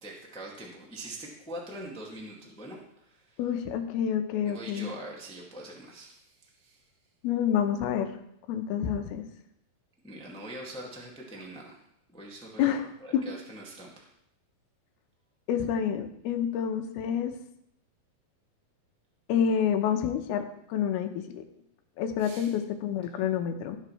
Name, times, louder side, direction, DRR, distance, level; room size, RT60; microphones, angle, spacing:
voice 1, 0.0-3.4 4.4-6.8 10.0-11.8 12.1-12.7 13.0-14.1 22.2-22.5, right 1 dB, 5° left, -2 dB, 0.4 m, -43 dB
voice 2, 3.4-4.9 7.2-8.1 8.5-9.2 12.6-12.9 13.1-13.2 15.5-17.3 19.3-21.4 22.0-23.8, left 8 dB, 85° left, 6 dB, 2.8 m, -28 dB
17.0 x 7.7 x 3.2 m, 0.76 s
omnidirectional pair, 4.4 m